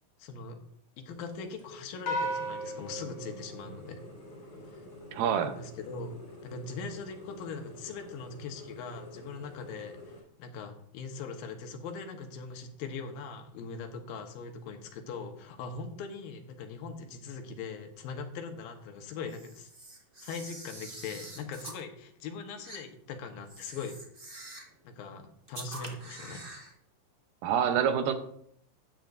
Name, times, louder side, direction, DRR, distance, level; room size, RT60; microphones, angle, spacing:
voice 1, 0.2-0.6 1.0-4.0 4.7-4.8 5.4-10.1 10.4-19.7 20.2-24.0 24.8-26.4, left 5 dB, 90° left, 5 dB, 2.9 m, -41 dB
sound 1, 1.1-10.2, left 1 dB, 30° left, 4.5 m, -49 dB
sound 2, 2.1-4.6, equal, 60° left, 2.4 m, -36 dB
voice 2, 5.1-5.5 27.4-28.1, right 8 dB, 75° right, 8 dB, 2.5 m, -26 dB
Camera, 19.2-21.8 22.6-22.8 23.4-24.7 25.5-26.7, right 2 dB, 45° right, 0.7 m, -46 dB
13.5 x 9.3 x 2.6 m, 0.68 s
omnidirectional pair, 4.1 m